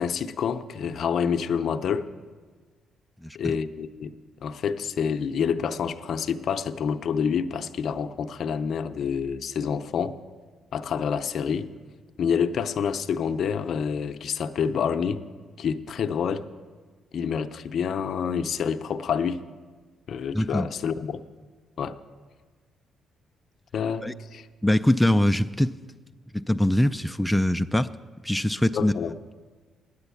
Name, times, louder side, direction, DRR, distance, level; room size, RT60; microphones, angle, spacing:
voice 1, 0.0-2.1 3.3-4.1 4.4-10.1 10.7-11.7 12.2-15.2 15.6-16.4 17.1-19.4 20.1-21.2 21.8-22.0 23.7-24.5 28.7-29.2, left 7 dB, 60° left, 10 dB, 0.5 m, -27 dB
voice 2, 3.2-3.6 20.3-20.7 24.0-24.1 24.6-25.7 26.3-27.9 28.2-28.9, left 1 dB, 5° left, 8 dB, 0.3 m, -23 dB
9.8 x 9.0 x 8.3 m, 1.4 s
cardioid pair, 90°, 0 cm